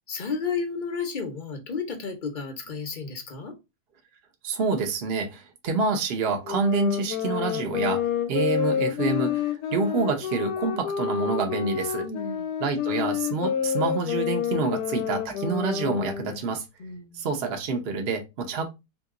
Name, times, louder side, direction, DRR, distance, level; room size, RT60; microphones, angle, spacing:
voice 1, 0.1-3.5 12.0-12.5 16.8-17.2, left 5 dB, 45° left, 5 dB, 0.7 m, -32 dB
voice 2, 4.4-12.1 12.6-16.6 17.1-18.7, right 4 dB, 55° right, 3 dB, 0.7 m, -27 dB
sound 1, 6.4-16.4, left 8 dB, 90° left, 1.2 m, -28 dB
2.9 x 2.8 x 3.6 m, 0.24 s
omnidirectional pair, 1.7 m